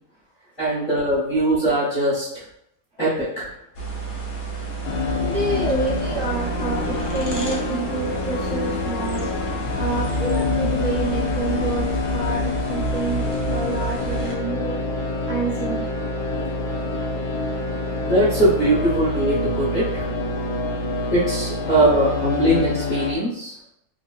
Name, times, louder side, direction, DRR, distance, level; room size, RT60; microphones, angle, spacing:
voice 1, 0.6-2.4 3.0-3.5 5.5-5.6 18.0-20.1 21.1-23.5, right 1 dB, 35° left, -9 dB, 0.9 m, -21 dB
sound 1, 3.7-14.3, right 3 dB, 70° left, 0.5 m, -30 dB
sound 2, 4.8-23.2, left 3 dB, 85° left, 1.1 m, -26 dB
voice 2, 5.2-9.3 9.7-14.8 15.2-15.8, right 3 dB, 60° right, -6 dB, 1.1 m, -28 dB
3.1 x 2.6 x 2.2 m, 0.76 s
omnidirectional pair, 1.7 m